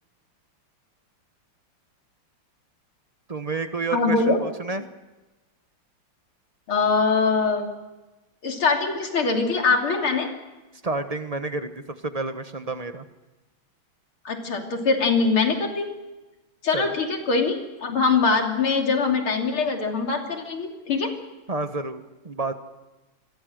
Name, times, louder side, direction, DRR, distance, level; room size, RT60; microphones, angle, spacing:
voice 1, 3.3-4.9 10.8-11.7 12.0-13.0 16.7-16.9 21.5-22.5, right 3 dB, 25° right, 9 dB, 0.8 m, -30 dB
voice 2, 3.9-4.4 6.7-7.7 8.4-10.3 14.3-15.9 16.6-21.1, left 4 dB, 75° left, 3 dB, 3.8 m, -23 dB
27.5 x 22.0 x 6.5 m, 1.1 s
omnidirectional pair, 2.4 m